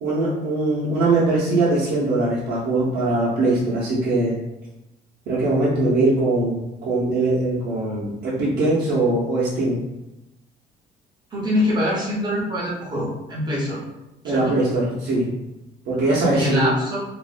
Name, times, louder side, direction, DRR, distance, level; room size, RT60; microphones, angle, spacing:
voice 1, 0.0-4.4 5.3-9.8 14.2-15.3 15.9-16.7, right 2 dB, 75° right, -7 dB, 0.7 m, -21 dB
voice 2, 11.3-13.8 14.2-14.6 16.3-17.0, left 1 dB, 25° right, -5 dB, 0.9 m, -24 dB
2.5 x 2.0 x 2.4 m, 0.95 s
cardioid pair, 110°, 17 cm